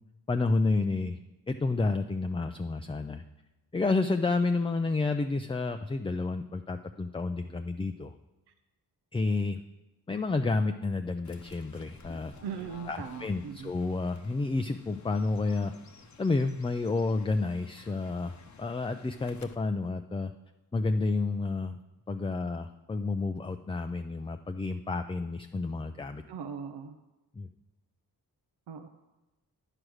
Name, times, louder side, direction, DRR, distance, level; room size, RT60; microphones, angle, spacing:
voice 1, 0.3-1.2 1.5-3.2 3.7-8.1 9.1-9.6 10.1-12.3 12.9-15.7 16.2-20.3 20.7-21.8 22.1-26.2 27.4-27.5, left 3 dB, 15° left, 7 dB, 0.3 m, -30 dB
Fowl / Bird, 11.2-19.5, left 5 dB, 45° left, 0.8 m, -53 dB
voice 2, 12.4-13.7 26.3-27.0 28.7-28.9, right 7 dB, 85° right, 7 dB, 0.6 m, -39 dB
9.7 x 4.9 x 6.2 m, 1.0 s
cardioid pair, 60°, 40 cm